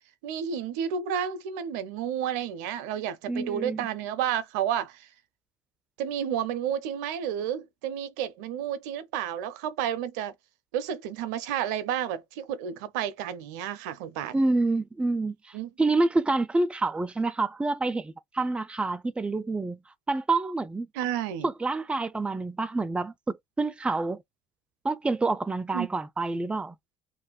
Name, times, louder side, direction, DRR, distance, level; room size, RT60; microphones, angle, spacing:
voice 1, 0.2-5.1 6.0-10.3 10.7-14.3 15.5-15.7 20.9-21.5 25.7-25.9, right 9 dB, 80° right, 0.5 m, -31 dB
voice 2, 3.3-3.9 14.3-19.8 20.1-20.9 21.4-24.2 24.8-26.8, right 3 dB, 10° right, 0.4 m, -27 dB
2.5 x 2.1 x 3.8 m
hypercardioid pair, 70°, 9 cm